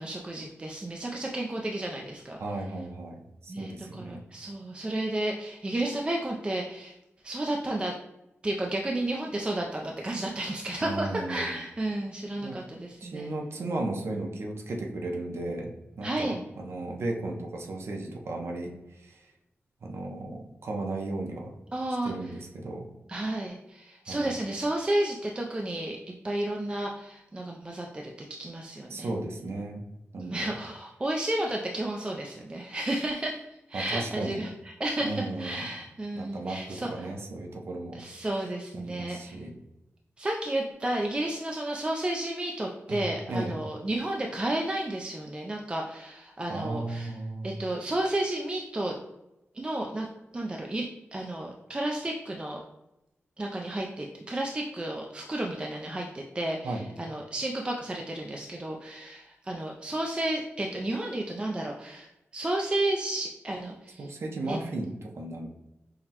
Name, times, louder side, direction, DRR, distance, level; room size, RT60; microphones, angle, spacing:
voice 1, 0.0-2.4 3.5-6.9 7.2-8.0 8.4-13.3 16.0-16.4 21.7-22.1 23.1-26.0 26.2-29.1 30.2-33.4 33.7-34.5 34.8-37.1 37.9-39.4 40.2-47.2 47.4-49.0 49.5-50.1 50.3-52.6 53.4-62.1 62.3-64.1 64.5-64.6, right 1 dB, 20° right, 0 dB, 0.3 m, -32 dB
voice 2, 2.4-4.2 10.8-11.5 12.4-12.6 13.0-19.2 19.8-21.6 22.0-22.9 24.1-24.3 28.9-29.8 30.1-30.6 33.7-34.4 35.0-35.7 36.2-38.0 38.7-39.6 42.9-43.6 46.5-47.6 56.6-56.9 64.0-65.5, right 2 dB, 65° right, 1 dB, 0.6 m, -35 dB
5.7 x 2.1 x 2.8 m, 0.94 s
wide cardioid pair, 120°, 5 cm